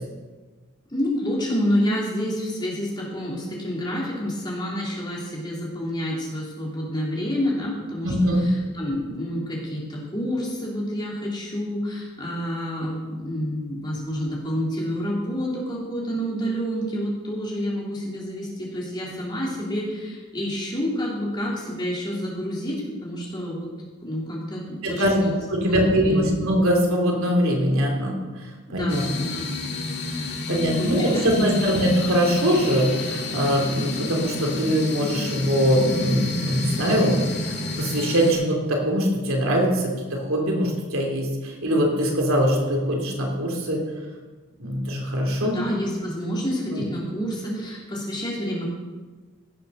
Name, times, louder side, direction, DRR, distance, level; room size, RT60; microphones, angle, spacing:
voice 1, 0.9-23.7 24.0-25.3 25.6-26.4 28.7-29.5 30.5-31.8 45.4-48.7, equal, 20° left, -4 dB, 3.1 m, -28 dB
voice 2, 8.0-8.5 24.8-25.2 25.5-29.3 30.5-37.2 37.8-43.8 44.6-45.6 46.7-46.8, equal, 75° right, 0 dB, 2.8 m, -22 dB
sound 1, 28.9-38.3, left 2 dB, 50° left, 1.8 m, -30 dB
16.0 x 6.8 x 6.3 m, 1.3 s
head